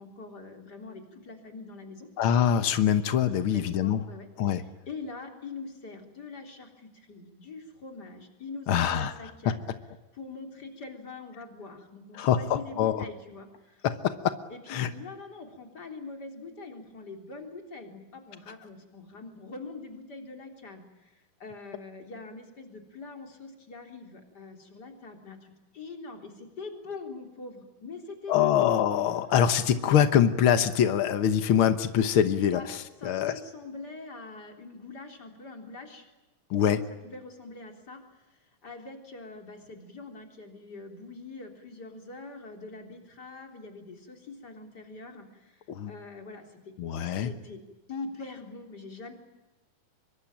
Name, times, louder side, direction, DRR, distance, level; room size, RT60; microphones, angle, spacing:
voice 1, 0.0-2.1 3.3-9.6 10.1-13.9 14.5-28.5 32.5-32.7 33.0-36.1 36.9-46.7 47.1-47.6 47.9-49.1, left 3 dB, 30° left, 3 dB, 3.9 m, -44 dB
voice 2, 2.2-4.0 4.4-4.6 8.7-9.1 9.4-9.5 12.2-13.0 13.8-14.1 14.7-14.9 28.3-33.3 36.5-36.8 45.7-45.9 46.8-47.3, left 9 dB, 80° left, 10 dB, 1.1 m, -24 dB
25.0 x 24.0 x 9.0 m, 1.1 s
omnidirectional pair, 4.1 m